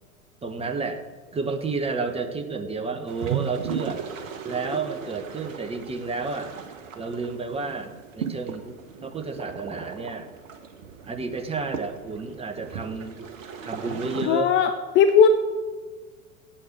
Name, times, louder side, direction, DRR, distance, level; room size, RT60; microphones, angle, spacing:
voice 1, 0.4-1.0 1.3-4.0 4.4-6.5 6.9-10.3 11.1-13.2 13.6-14.6, right 4 dB, 15° right, 6 dB, 1.1 m, -31 dB
sound 1, 3.1-14.3, right 7 dB, 65° right, 1.3 m, -37 dB
voice 2, 14.2-15.3, left 7 dB, 25° left, 8 dB, 0.6 m, -18 dB
8.7 x 7.9 x 8.5 m, 1.4 s
figure-of-eight pair, 85°, 43 cm